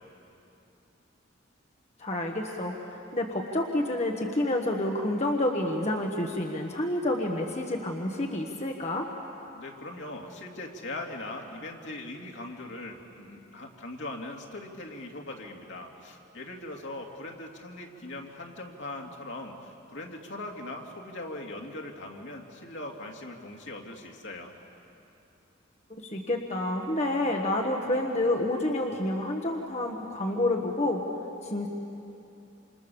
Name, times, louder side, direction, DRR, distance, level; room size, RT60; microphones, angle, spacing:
voice 1, 2.0-9.1 26.0-31.0 31.4-31.7, left 1 dB, 35° left, 1 dB, 1.4 m, -29 dB
voice 2, 9.5-24.5, left 2 dB, 65° left, 0 dB, 2.6 m, -40 dB
28.0 x 28.0 x 7.1 m, 2.9 s
head